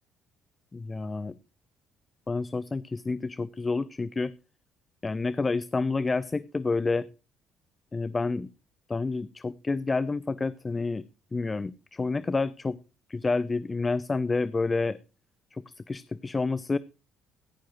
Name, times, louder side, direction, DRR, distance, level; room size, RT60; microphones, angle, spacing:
voice 1, 0.7-1.4 2.3-4.3 5.0-7.1 7.9-8.5 8.9-11.1 11.3-12.8 13.1-15.0 15.5-16.8, left 3 dB, 25° left, 18 dB, 0.5 m, -29 dB
15.5 x 14.0 x 3.1 m, 0.32 s
hypercardioid pair, 50°, 0 cm